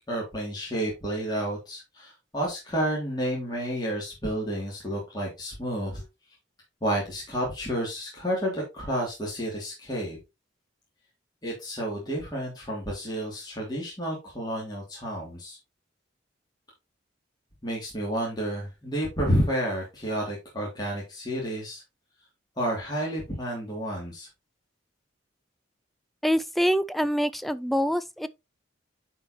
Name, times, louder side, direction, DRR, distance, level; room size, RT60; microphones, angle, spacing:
voice 1, 0.1-6.0 6.8-10.2 11.4-15.6 17.6-21.8 22.6-24.3, equal, 20° left, 2.8 m, -30 dB
voice 2, 26.2-28.3, equal, ahead, 0.3 m, -25 dB
10.5 x 4.4 x 3.0 m
head